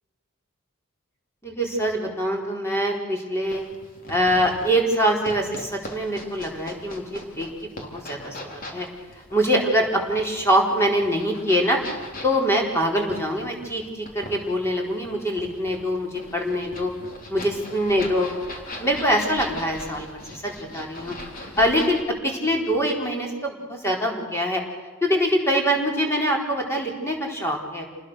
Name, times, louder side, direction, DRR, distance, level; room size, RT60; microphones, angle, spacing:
voice 1, 1.4-3.6 4.1-8.9 9.3-11.8 12.2-16.9 17.3-18.3 18.8-21.1 21.6-24.6 25.0-27.9, equal, 10° left, 0 dB, 4.4 m, -24 dB
sound 1, 3.5-22.0, left 1 dB, 40° left, 3.9 m, -40 dB
29.0 x 20.5 x 6.5 m, 1.3 s
head